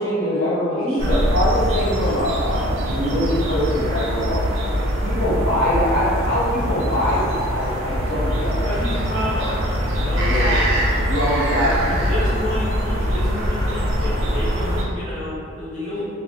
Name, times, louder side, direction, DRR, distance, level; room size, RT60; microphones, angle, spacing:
voice 1, 0.0-4.7 5.0-8.7 10.2-10.6 11.1-12.0 15.9-16.0, equal, 80° left, -12 dB, 1.5 m, -23 dB
voice 2, 0.7-1.2 8.6-11.1 11.9-16.0, left 1 dB, 35° left, -11 dB, 0.5 m, -30 dB
sound 1, 1.0-14.8, equal, 75° right, 0.4 m, -23 dB
2.3 x 2.0 x 3.0 m, 2.2 s
head